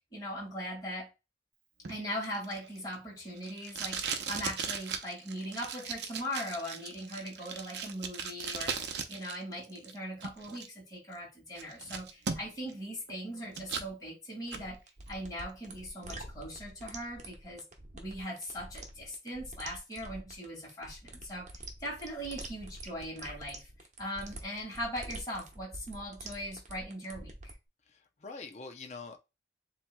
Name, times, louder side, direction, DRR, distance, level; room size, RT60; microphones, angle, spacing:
voice 1, 0.1-1.1 1.9-14.8 15.1-17.7 17.9-21.5 21.8-23.7 24.0-27.5, equal, 20° left, 2.2 m, -40 dB
Packing tape duct tape, 1.8-9.4 9.6-10.7 11.1-11.2 11.6-12.7 13.1-13.9 14.3-14.7, right 6 dB, 70° right, 0.7 m, -38 dB
sound 1, 14.5-27.5, right 2 dB, 40° right, 1.0 m, -46 dB
voice 2, 27.9-29.2, left 4 dB, 40° left, 0.6 m, -45 dB
7.4 x 2.8 x 2.2 m
head